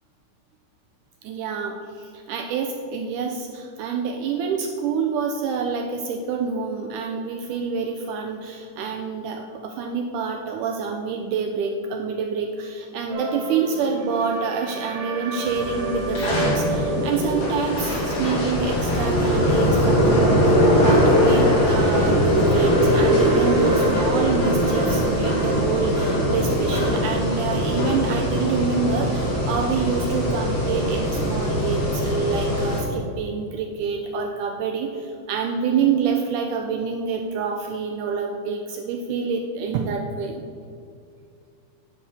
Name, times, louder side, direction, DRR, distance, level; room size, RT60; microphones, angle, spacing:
voice 1, 1.2-20.5 20.8-40.4, right 5 dB, 85° right, 3 dB, 1.8 m, -27 dB
sound 1, 13.1-32.7, right 3 dB, 70° right, 2.7 m, -34 dB
sound 2, 15.4-32.8, equal, 30° left, 2.2 m, -21 dB
9.6 x 4.9 x 7.9 m, 2.3 s
omnidirectional pair, 4.2 m